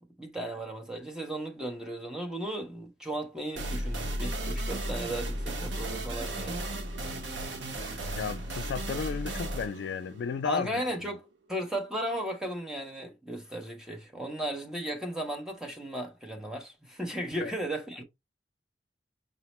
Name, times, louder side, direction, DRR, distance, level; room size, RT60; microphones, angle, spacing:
voice 1, 0.2-6.6 10.4-18.0, right 1 dB, 5° right, 0.6 m, -35 dB
sound 1, 3.6-11.0, right 1 dB, 70° right, 0.6 m, -35 dB
voice 2, 8.2-10.8 17.4-17.5, left 6 dB, 65° left, 0.3 m, -33 dB
5.0 x 2.0 x 2.9 m
head